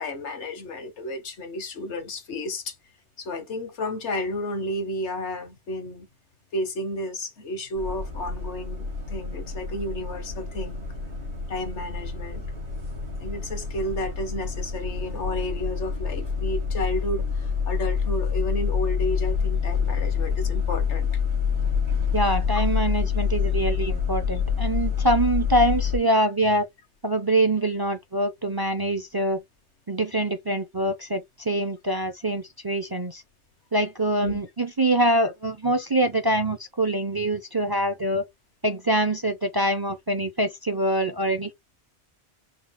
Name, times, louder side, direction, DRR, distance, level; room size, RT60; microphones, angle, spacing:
voice 1, 0.0-2.7 3.2-6.1 6.5-10.8 11.5-12.4 13.2-21.1 22.5-22.6 34.2-34.4, left 1 dB, 85° left, 1.4 m, -32 dB
sound 1, 7.8-26.0, left 6 dB, 75° right, 2.8 m, -27 dB
voice 2, 22.1-26.7 27.0-29.4 29.9-33.2 33.7-38.2 38.6-41.5, right 1 dB, 30° right, 0.4 m, -24 dB
5.5 x 2.3 x 3.5 m
omnidirectional pair, 1.1 m